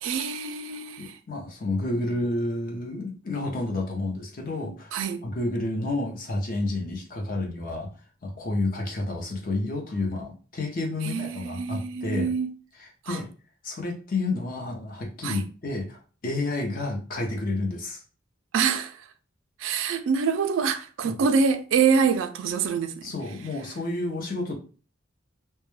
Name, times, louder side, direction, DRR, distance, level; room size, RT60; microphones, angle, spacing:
voice 1, 0.0-1.2 4.9-5.2 11.0-12.5 13.1-13.2 15.2-15.4 18.5-19.0 19.6-23.1, right 6 dB, 75° right, 0.3 m, -25 dB
voice 2, 1.0-5.0 5.2-7.9 8.2-12.3 12.8-13.3 13.6-18.0 21.0-21.2 23.0-24.5, left 2 dB, 45° left, 0.6 m, -30 dB
2.2 x 2.2 x 3.0 m
head